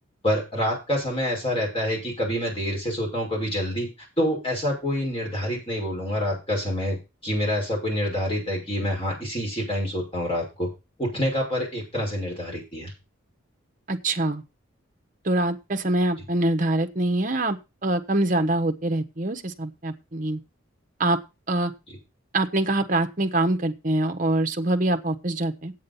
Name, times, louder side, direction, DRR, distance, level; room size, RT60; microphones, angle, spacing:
voice 1, 0.2-3.9 4.2-7.0 7.2-10.7 11.0-12.9, equal, 25° left, -2 dB, 5.9 m, -27 dB
voice 2, 13.9-14.4 15.2-17.6 17.8-20.4 21.0-21.2 21.5-21.7 22.3-25.7, right 2 dB, 40° right, 7 dB, 1.1 m, -24 dB
8.7 x 8.6 x 5.6 m, 0.28 s
head